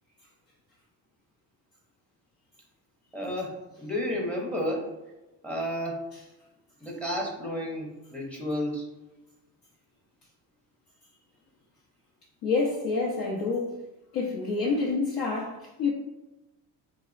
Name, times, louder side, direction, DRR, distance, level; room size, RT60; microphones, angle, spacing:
voice 1, 3.1-4.9 5.4-6.0 6.8-8.8, equal, 5° left, -2 dB, 0.6 m, -31 dB
voice 2, 12.4-13.8 14.1-15.9, left 4 dB, 70° left, -3 dB, 0.7 m, -28 dB
3.9 x 2.0 x 2.4 m, 1.0 s
cardioid pair, 115°, 40 cm